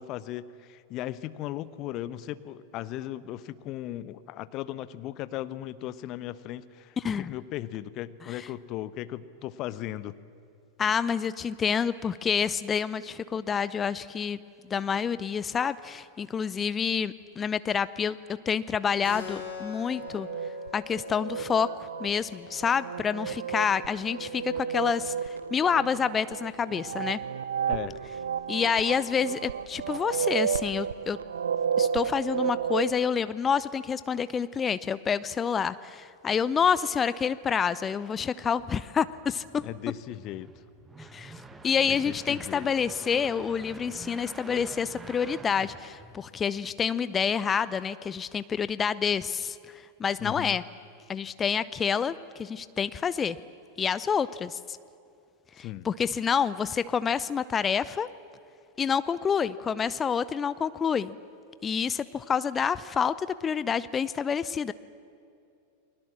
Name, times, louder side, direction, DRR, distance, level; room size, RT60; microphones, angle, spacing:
voice 1, 0.0-10.1 27.7-28.0 39.6-40.5 41.9-42.7 50.2-50.6 55.6-55.9, left 13 dB, 40° left, 15 dB, 0.9 m, -37 dB
voice 2, 10.8-14.4 14.7-18.2 18.5-20.3 20.7-27.2 28.5-31.2 31.8-39.6 41.0-41.3 41.6-49.6 50.0-50.6 51.1-53.4 53.8-54.8 55.6-58.1 58.8-61.1 61.6-64.7, left 7 dB, 20° left, 16 dB, 0.6 m, -28 dB
Keyboard (musical), 19.0-24.1, left 7 dB, 65° left, 5.6 m, -44 dB
sound 1, 19.9-32.9, right 7 dB, 70° right, 0.8 m, -32 dB
sound 2, 39.1-46.6, right 3 dB, 10° right, 1.5 m, -47 dB
30.0 x 21.5 x 7.4 m, 2.5 s
figure-of-eight pair, 90°, 0 cm